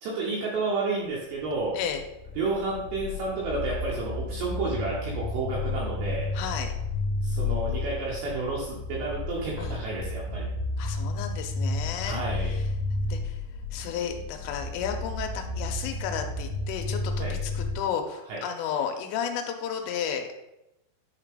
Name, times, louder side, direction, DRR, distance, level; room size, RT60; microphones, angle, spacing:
voice 1, 0.0-1.8 2.4-6.3 7.2-10.5 12.0-12.5 17.2-17.3 18.3-18.4, right 3 dB, 70° right, -5 dB, 2.9 m, -31 dB
sound 1, 1.4-17.7, left 2 dB, 40° left, 2.0 m, -32 dB
voice 2, 6.3-6.7 9.6-9.8 10.8-12.7 13.1-13.4 13.7-20.4, left 8 dB, 85° left, 4 dB, 3.1 m, -33 dB
10.5 x 4.0 x 3.7 m, 0.91 s
omnidirectional pair, 6.0 m